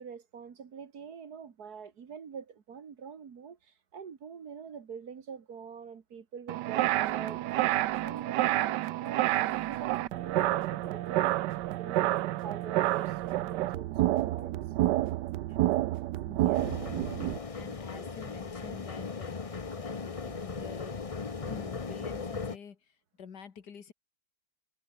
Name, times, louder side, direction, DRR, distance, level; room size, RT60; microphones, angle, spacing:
voice 1, 0.0-7.5 8.0-14.5, right 6 dB, 65° right, 2.1 m, -45 dB
sound 1, 6.5-17.4, right 15 dB, 90° right, 1.3 m, -29 dB
sound 2, 6.9-21.7, right 2 dB, 30° right, 4.9 m, -59 dB
voice 2, 16.3-21.0 21.4-23.9, left 7 dB, 75° left, 2.3 m, -48 dB
sound 3, 16.5-22.6, left 4 dB, 30° left, 0.7 m, -38 dB
omnidirectional pair, 1.8 m